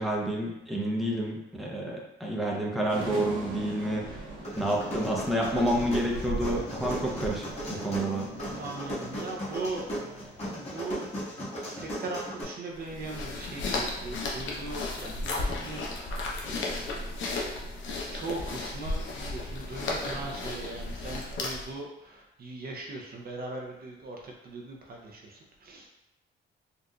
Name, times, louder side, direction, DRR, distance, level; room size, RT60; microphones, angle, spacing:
voice 1, 0.0-4.2 4.6-8.3, right 1 dB, ahead, -3 dB, 0.6 m, -29 dB
sound 1, 2.9-10.5, right 2 dB, 80° right, 0.8 m, -40 dB
sound 2, 4.4-12.4, equal, 35° left, 1.4 m, -37 dB
voice 2, 8.6-9.8 10.2-10.3 10.5-11.1 11.6-17.0 18.1-25.9, right 2 dB, 50° right, 0 dB, 0.6 m, -39 dB
sound 3, 12.7-21.8, left 2 dB, 70° left, 0.7 m, -34 dB
3.9 x 2.5 x 2.3 m, 0.91 s
cardioid pair, 90°, 20 cm